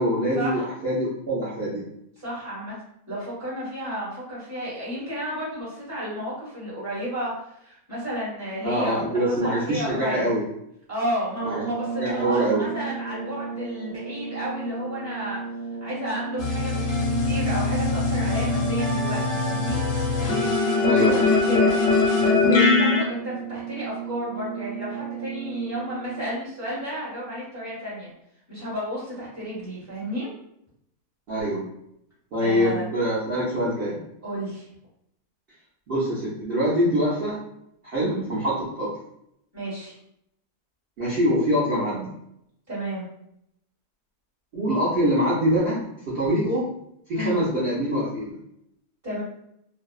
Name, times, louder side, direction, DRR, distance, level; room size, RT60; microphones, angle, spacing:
voice 1, 0.0-1.8 8.6-10.5 11.4-11.6 12.0-12.7 20.8-21.2 31.3-31.6 32.3-34.0 35.9-37.4 37.8-38.9 41.0-42.1 44.5-46.6 47.1-48.4, equal, 50° right, -9 dB, 0.7 m, -24 dB
voice 2, 2.2-2.8 3.1-7.3 7.6-10.3 10.9-15.4 15.8-19.8 20.8-21.7 22.1-28.1 28.5-30.3 32.4-32.9 34.2-34.7 38.0-38.2 39.5-39.9 42.7-43.1 47.1-47.4 49.0-49.2, equal, 10° right, -8 dB, 1.0 m, -32 dB
sound 1, 11.3-26.5, right 6 dB, 85° right, 1.3 m, -34 dB
sound 2, 16.4-23.0, left 4 dB, 65° left, 0.9 m, -22 dB
2.6 x 2.2 x 2.3 m, 0.75 s
omnidirectional pair, 1.7 m